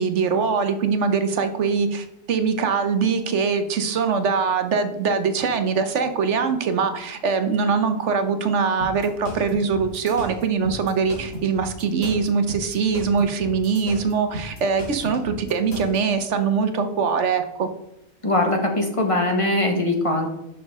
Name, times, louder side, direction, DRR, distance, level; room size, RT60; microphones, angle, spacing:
voice 1, 0.0-17.7, right 5 dB, 60° right, 8 dB, 1.1 m, -22 dB
sound 1, 8.8-16.0, equal, 70° left, 2.7 m, -35 dB
voice 2, 18.2-20.3, left 1 dB, 25° left, 2 dB, 1.3 m, -21 dB
10.5 x 6.1 x 3.6 m, 0.85 s
omnidirectional pair, 1.4 m